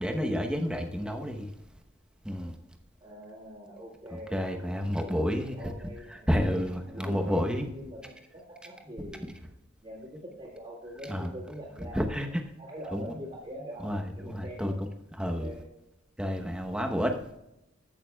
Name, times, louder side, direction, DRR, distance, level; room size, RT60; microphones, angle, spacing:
voice 1, 0.0-1.5 2.2-2.5 4.1-5.5 6.1-7.7 9.2-9.3 11.1-11.3 11.9-12.3 12.9-13.1 13.8-14.9 15.2-15.5 16.2-17.1, equal, 5° right, 3 dB, 0.9 m, -30 dB
voice 2, 3.0-6.3 6.9-9.2 9.8-12.3 12.6-13.9 14.1-14.8 15.4-15.7, equal, 30° right, -7 dB, 2.2 m, -43 dB
15.0 x 6.6 x 2.3 m, 0.89 s
head